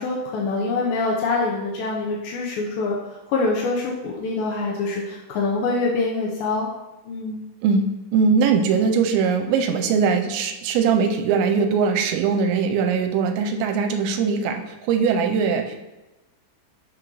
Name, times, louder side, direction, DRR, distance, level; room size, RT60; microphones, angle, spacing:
voice 1, 0.0-3.0 3.3-6.7 7.1-7.4, left 3 dB, 85° left, -2 dB, 2.1 m, -25 dB
voice 2, 7.6-15.8, right 5 dB, 85° right, 5 dB, 2.7 m, -21 dB
11.5 x 5.1 x 3.0 m, 1.1 s
omnidirectional pair, 5.4 m